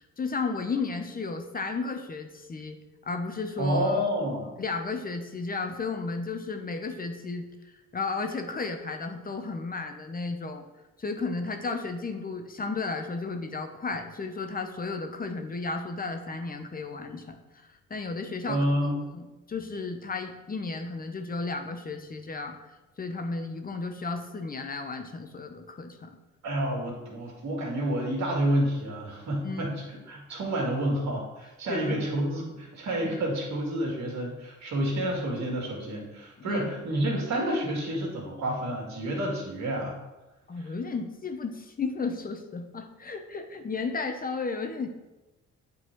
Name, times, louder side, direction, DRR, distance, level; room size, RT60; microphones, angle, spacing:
voice 1, 0.0-2.8 3.0-4.1 4.6-7.5 7.9-10.6 11.0-18.6 19.1-22.6 23.0-26.1 29.4-29.7 31.7-32.1 36.4-36.8 40.5-44.9, left 4 dB, 30° left, 5 dB, 0.8 m, -33 dB
voice 2, 3.6-4.5 18.5-18.9 26.4-40.0 40.6-40.7, right 1 dB, 65° right, -1 dB, 2.4 m, -29 dB
8.1 x 4.0 x 4.6 m, 1.1 s
cardioid pair, 90°, 30 cm